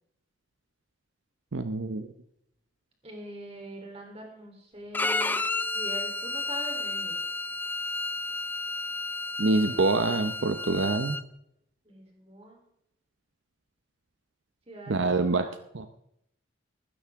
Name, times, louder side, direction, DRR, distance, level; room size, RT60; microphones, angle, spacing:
voice 1, 1.5-2.1 9.4-11.2 14.9-15.4 15.7-15.9, right 3 dB, 75° right, 9 dB, 0.8 m, -25 dB
voice 2, 3.0-5.5 5.7-7.2 9.6-9.9 11.9-12.6 14.7-15.5, right 1 dB, 30° right, 1 dB, 3.4 m, -43 dB
Bowed string instrument, 4.9-11.2, left 2 dB, 10° left, 0.4 m, -31 dB
15.5 x 12.5 x 3.6 m, 0.76 s
head